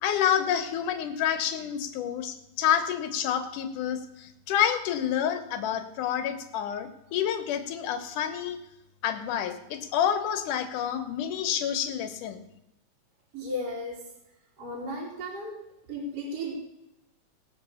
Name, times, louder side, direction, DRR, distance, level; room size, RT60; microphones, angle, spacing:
voice 1, 0.0-8.6 9.0-12.4, left 9 dB, 85° left, 8 dB, 2.6 m, -28 dB
voice 2, 13.3-14.1 14.6-15.6 15.9-16.6, equal, 55° right, -5 dB, 4.1 m, -34 dB
19.0 x 6.3 x 7.0 m, 0.88 s
omnidirectional pair, 3.5 m